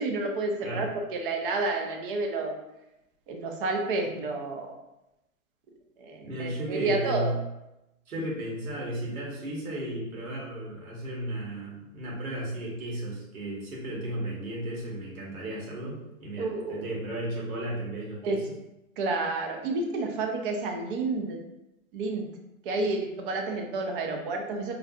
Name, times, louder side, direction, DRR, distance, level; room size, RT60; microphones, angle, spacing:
voice 1, 0.0-2.5 3.3-4.7 6.0-7.4 8.2-8.3 16.4-16.9 18.2-18.4 19.0-21.4 21.9-22.3 22.6-24.7, right 3 dB, 40° right, 3 dB, 0.6 m, -30 dB
voice 2, 6.2-7.3 8.1-18.4, right 1 dB, 75° right, -3 dB, 1.4 m, -34 dB
4.4 x 2.4 x 2.4 m, 0.91 s
hypercardioid pair, 125°, 43 cm